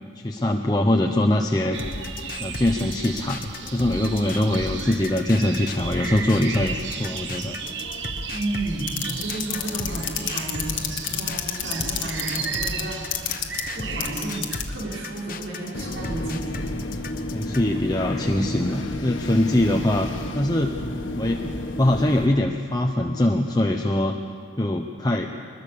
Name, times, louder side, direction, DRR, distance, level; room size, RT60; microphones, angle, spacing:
voice 1, 0.2-1.8 2.4-7.6 17.3-20.1 20.3-20.8 21.2-24.2 24.6-25.3, left 1 dB, 20° left, 2 dB, 0.9 m, -23 dB
sound 1, 1.7-14.6, right 6 dB, 70° right, 1.4 m, -35 dB
sound 2, 1.8-17.8, left 3 dB, 45° left, 1.1 m, -36 dB
voice 2, 8.3-13.5 13.7-16.7 19.5-19.8, right 2 dB, 85° right, -4 dB, 5.8 m, -32 dB
sound 3, 8.9-14.7 15.7-22.3, left 4 dB, 90° left, 1.8 m, -30 dB
23.0 x 21.5 x 6.9 m, 2.2 s
head